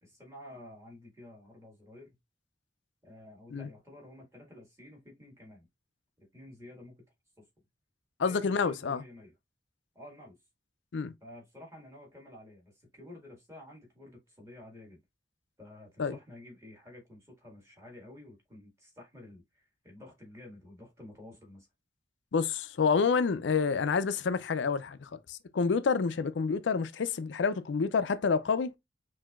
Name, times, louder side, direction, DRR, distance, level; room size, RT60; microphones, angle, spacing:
voice 1, 0.0-2.2 3.0-5.7 6.3-7.1 7.4-7.5 8.2-9.3 9.9-10.4 11.2-15.0 15.6-21.7 26.1-26.2, left 1 dB, 15° right, 1.7 m, -51 dB
voice 2, 8.2-9.0 10.9-11.1 16.0-16.2 22.3-28.7, left 5 dB, 85° left, 0.4 m, -28 dB
5.6 x 2.7 x 2.4 m
head